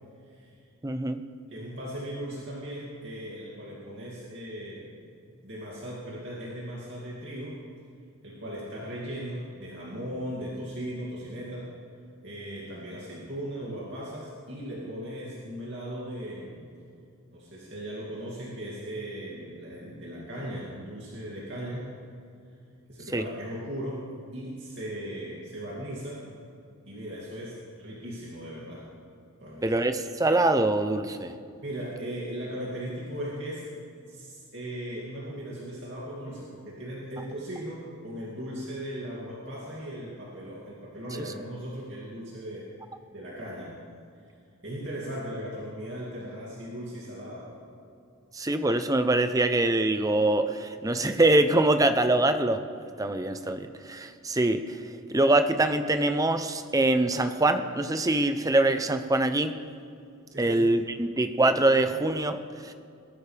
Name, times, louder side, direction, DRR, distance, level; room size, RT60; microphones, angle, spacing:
voice 1, 0.8-1.2 23.1-23.2 29.6-31.3 48.3-52.6 53.0-59.5 60.4-62.7, right 2 dB, 15° right, 8 dB, 0.6 m, -24 dB
voice 2, 1.5-5.0 5.4-7.6 8.2-11.7 12.2-16.7 17.3-21.9 22.9-26.2 26.9-28.9 29.4-29.8 31.6-33.7 34.1-42.7 43.1-43.8 44.6-47.5 60.3-60.6, equal, 55° right, -6 dB, 2.6 m, -38 dB
21.0 x 13.0 x 3.4 m, 2.4 s
head